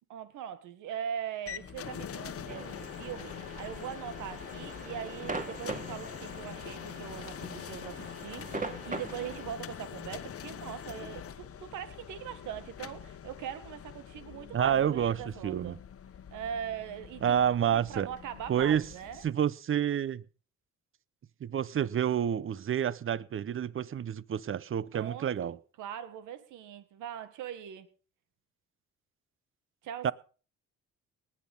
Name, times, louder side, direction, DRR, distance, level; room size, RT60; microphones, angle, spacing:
voice 1, 0.1-15.8 16.3-19.2 24.9-27.9 29.8-30.1, right 9 dB, 90° right, 1.8 m, -41 dB
sound 1, 1.5-19.3, left 8 dB, 50° left, 1.1 m, -44 dB
sound 2, 2.5-9.4, right 3 dB, 25° right, 2.3 m, -42 dB
voice 2, 14.5-15.8 17.2-18.1 18.5-18.8 19.2-20.2 21.4-25.5 30.0-30.1, right 9 dB, 45° right, 0.8 m, -29 dB
19.5 x 8.4 x 5.5 m
cardioid pair, 90°, 30 cm